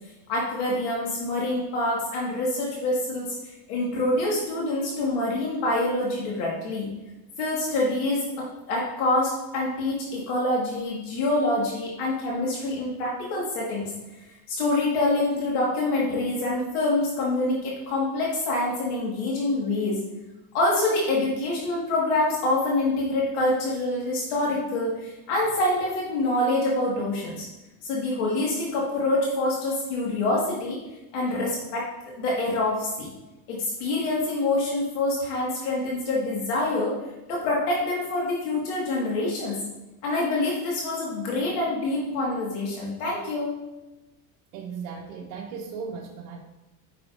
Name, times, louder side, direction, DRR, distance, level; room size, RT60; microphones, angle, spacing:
voice 1, 0.3-3.3 3.7-6.9 7.4-13.9 14.5-20.0 20.5-27.5 27.8-30.8 31.1-31.9 32.2-33.1 33.5-36.9 37.3-39.6 40.0-43.5, left 2 dB, 75° left, -4 dB, 1.8 m, -26 dB
voice 2, 44.5-46.4, right 5 dB, 80° right, -2 dB, 0.9 m, -36 dB
8.7 x 5.9 x 2.5 m, 1.0 s
cardioid pair, 160°, 44 cm